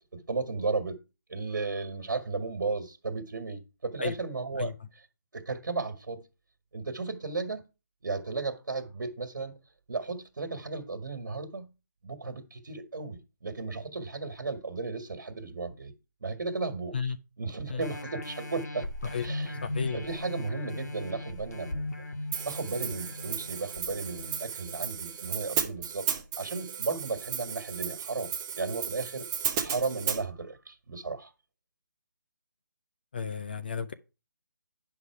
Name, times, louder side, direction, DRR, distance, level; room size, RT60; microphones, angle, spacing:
voice 1, 0.1-1.0 1.3-5.1 5.3-6.2 6.7-7.6 8.0-9.5 9.9-11.7 12.0-15.9 16.2-18.9 19.2-19.6 19.9-22.0 22.4-26.1 26.4-28.3 28.6-29.3 29.6-31.3, right 3 dB, 65° right, 1.8 m, -34 dB
sound 1, 17.8-25.0 25.5-25.6, left 1 dB, 55° left, 1.9 m, -38 dB
voice 2, 19.6-20.0 33.1-33.9, left 6 dB, 30° left, 0.5 m, -32 dB
Hi-hat, 22.3-30.2, right 8 dB, 10° right, 0.7 m, -34 dB
9.9 x 5.8 x 4.7 m
hypercardioid pair, 175°, 10 cm